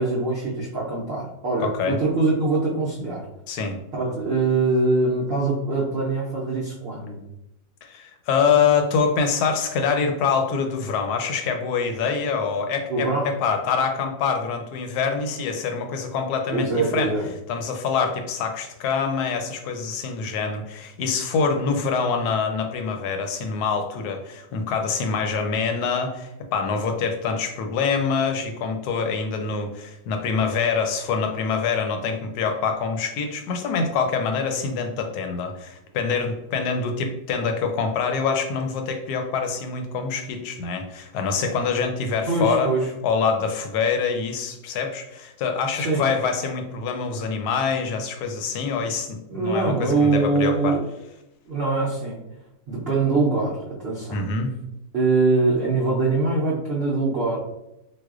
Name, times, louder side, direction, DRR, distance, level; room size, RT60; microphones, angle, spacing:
voice 1, 0.0-3.3 3.9-7.2 12.9-13.3 16.5-17.3 42.3-42.8 45.7-46.0 49.3-50.8 51.5-52.2 52.7-54.2 54.9-57.4, right 3 dB, 75° right, -5 dB, 0.5 m, -23 dB
voice 2, 1.6-2.0 3.5-3.8 7.8-17.1 17.5-42.7 43.0-50.8 54.1-54.5, left 5 dB, 75° left, 5 dB, 1.0 m, -25 dB
4.1 x 2.4 x 2.4 m, 0.86 s
omnidirectional pair, 1.8 m